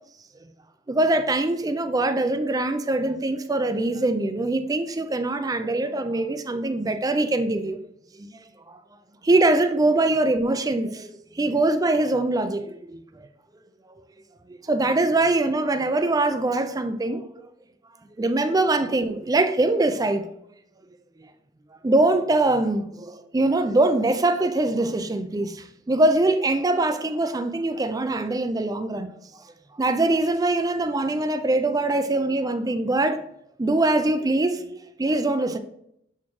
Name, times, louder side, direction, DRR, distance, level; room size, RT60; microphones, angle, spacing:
voice 1, 0.9-7.8 8.2-8.4 9.2-13.0 14.5-17.3 18.2-20.3 21.2-21.3 21.8-29.1 29.8-33.2 33.6-35.6, right 2 dB, 20° right, 0.4 m, -23 dB
7.1 x 4.3 x 3.1 m
head